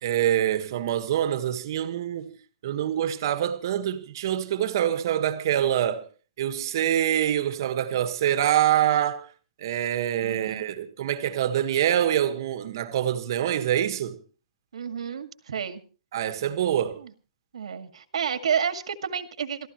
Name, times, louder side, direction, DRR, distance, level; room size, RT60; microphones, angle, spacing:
voice 1, 0.0-2.4 2.6-6.1 6.4-9.3 9.6-14.2 16.1-17.0, right 11 dB, 40° right, 1.5 m, -25 dB
voice 2, 10.2-10.6 14.7-15.8 17.0-17.1 17.5-19.7, right 7 dB, 90° right, 2.1 m, -30 dB
28.0 x 14.5 x 3.1 m
hypercardioid pair, 175°, 3 cm